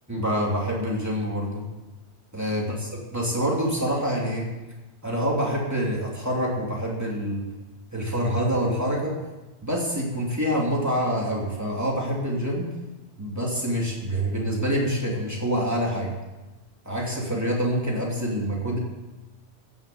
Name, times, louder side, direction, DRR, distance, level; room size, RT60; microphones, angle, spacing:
voice 1, 0.1-1.7 2.3-4.5 5.0-7.4 7.9-9.1 9.6-12.7 13.2-16.1 16.8-18.8, equal, 15° right, -3 dB, 3.2 m, -26 dB
15.0 x 7.1 x 8.0 m, 1.1 s
omnidirectional pair, 1.2 m